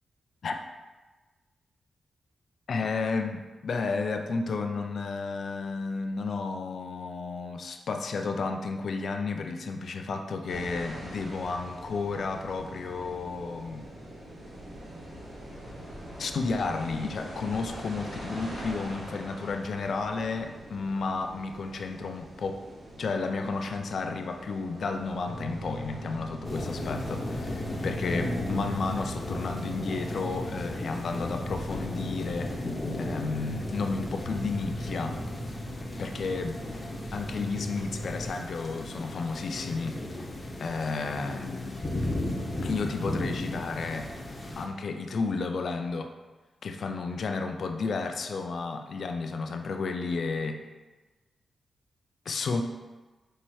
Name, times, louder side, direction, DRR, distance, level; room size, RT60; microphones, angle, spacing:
voice 1, 2.7-13.9 16.2-22.6 23.0-32.6 33.0-35.2 36.0-36.6 37.1-40.3 40.6-41.9 42.6-44.1 44.6-46.1 46.6-50.7 52.3-52.6, left 4 dB, 70° left, 5 dB, 0.4 m, -32 dB
sound 1, 10.5-27.7, right 1 dB, 80° right, 1.5 m, -44 dB
sound 2, 25.2-38.3, right 1 dB, 25° right, 0.9 m, -40 dB
sound 3, 26.4-44.7, left 1 dB, 30° left, 0.9 m, -35 dB
5.5 x 2.8 x 3.1 m, 1.2 s
cardioid pair, 60°, 0 cm